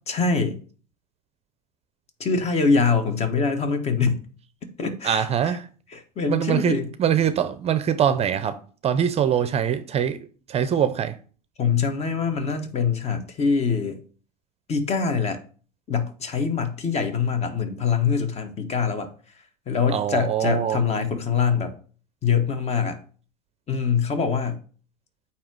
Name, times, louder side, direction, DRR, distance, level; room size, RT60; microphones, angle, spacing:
voice 1, 0.1-0.6 2.2-4.2 4.8-5.6 5.9-6.9 11.6-14.0 14.7-15.4 15.9-19.1 19.7-21.7 22.2-23.0 23.7-24.6, left 5 dB, 30° left, 1.3 m, -24 dB
voice 2, 5.0-5.7 6.3-10.2 10.5-11.2 19.9-20.8, right 9 dB, 30° right, 0.6 m, -23 dB
8.5 x 2.9 x 6.1 m
hypercardioid pair, 85°, 21 cm